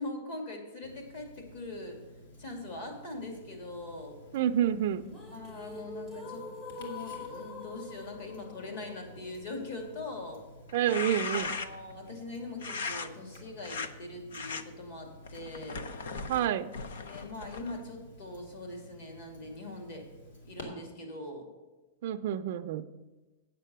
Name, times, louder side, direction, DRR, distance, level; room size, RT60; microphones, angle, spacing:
voice 1, 0.0-2.0 2.4-4.2 5.3-6.5 6.8-10.4 11.3-15.9 17.0-20.1 20.4-21.5, left 2 dB, 50° left, 2 dB, 2.3 m, -42 dB
Tick-tock, 0.8-20.6, left 1 dB, 70° left, 2.6 m, -53 dB
voice 2, 4.3-5.1 10.7-11.6 16.3-16.7 22.0-22.8, right 10 dB, 50° right, 6 dB, 0.4 m, -28 dB
sound 1, 4.9-10.9, left 3 dB, 15° left, 0.8 m, -45 dB
sound 2, 10.7-11.9 12.6-13.1 13.6-13.9 14.3-14.6 15.2-17.8, left 4 dB, 85° left, 0.7 m, -38 dB
8.7 x 7.4 x 6.7 m, 1.2 s
supercardioid pair, 170°, 0 cm